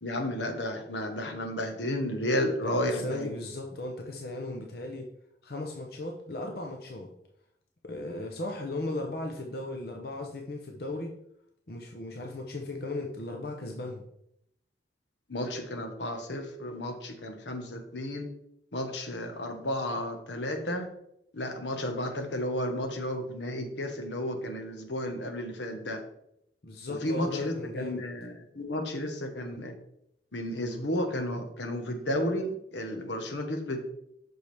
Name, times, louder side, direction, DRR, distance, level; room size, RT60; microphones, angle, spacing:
voice 1, 0.0-3.3 15.3-18.3 18.7-20.9 21.3-26.0 27.0-29.7 30.3-33.8, left 1 dB, 80° left, 5 dB, 1.3 m, -32 dB
voice 2, 2.6-5.1 5.4-7.1 7.8-11.1 11.7-14.0 26.6-28.0, left 2 dB, 60° left, 2 dB, 0.8 m, -36 dB
7.9 x 6.2 x 3.5 m, 0.76 s
head